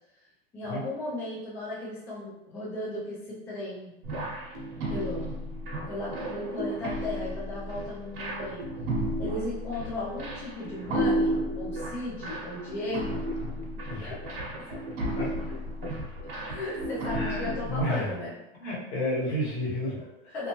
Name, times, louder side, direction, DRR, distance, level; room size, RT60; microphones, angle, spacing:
voice 1, 0.5-3.9 4.9-5.3 5.9-8.7 9.2-13.3 14.1-14.2 16.5-18.3 19.9-20.5, left 1 dB, 10° left, -7 dB, 0.3 m, -36 dB
sound 1, 4.0-17.8, right 1 dB, 60° right, 0.9 m, -33 dB
voice 2, 17.1-18.1 18.6-20.0, equal, 85° left, -5 dB, 1.3 m, -31 dB
2.8 x 2.2 x 2.8 m, 0.89 s
supercardioid pair, 160°, 31 cm